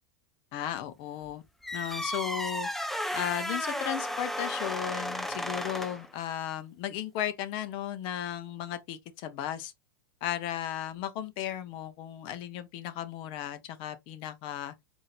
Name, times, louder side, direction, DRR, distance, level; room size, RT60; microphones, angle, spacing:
voice 1, 0.5-1.4 1.7-2.7 3.1-9.7 10.2-14.7, left 11 dB, 50° left, 0.7 m, -35 dB
sound 1, 1.6-6.1, equal, ahead, 0.4 m, -34 dB
4.0 x 2.6 x 3.1 m
hypercardioid pair, 95°, 12 cm